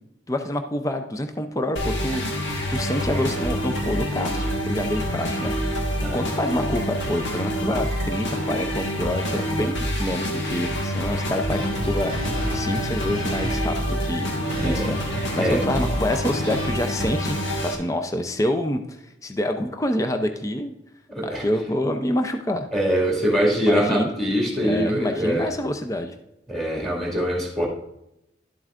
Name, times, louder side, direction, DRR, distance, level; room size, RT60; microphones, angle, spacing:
voice 1, 0.3-2.2 2.7-5.5 6.1-14.3 14.6-20.7 21.2-22.7 23.6-24.1 24.6-26.1, left 1 dB, 15° left, 6 dB, 0.5 m, -27 dB
sound 1, 1.8-17.8, equal, 80° left, 1.7 m, -27 dB
sound 2, 11.5-16.7, equal, 35° left, 3.6 m, -33 dB
voice 2, 14.6-14.9 15.4-15.6 21.1-21.5 22.7-25.5 26.5-27.7, equal, ahead, -2 dB, 2.1 m, -23 dB
11.5 x 7.6 x 2.5 m, 0.86 s
head